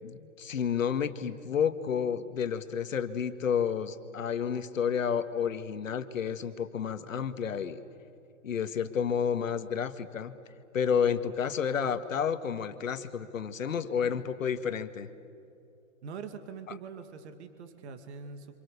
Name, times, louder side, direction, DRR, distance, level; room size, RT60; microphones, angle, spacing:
voice 1, 0.0-7.8 8.4-10.3 10.7-15.1, left 7 dB, 85° left, 9 dB, 1.9 m, -30 dB
voice 2, 16.0-18.6, right 5 dB, 55° right, 8 dB, 2.4 m, -43 dB
30.0 x 27.0 x 6.9 m, 2.6 s
hypercardioid pair, 150°, 39 cm